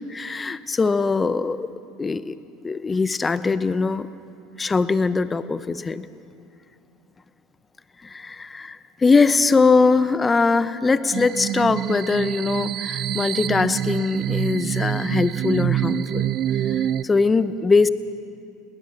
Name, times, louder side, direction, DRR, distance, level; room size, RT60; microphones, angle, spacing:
voice 1, 0.1-1.7 2.0-2.3 2.6-4.1 4.6-6.0 8.0-8.8 9.0-16.3 17.0-17.9, left 4 dB, 20° left, 14 dB, 0.8 m, -21 dB
sound 1, 11.1-17.0, right 11 dB, 50° right, 0.5 m, -26 dB
21.0 x 18.0 x 7.2 m, 2.5 s
hypercardioid pair, 90°, 0 cm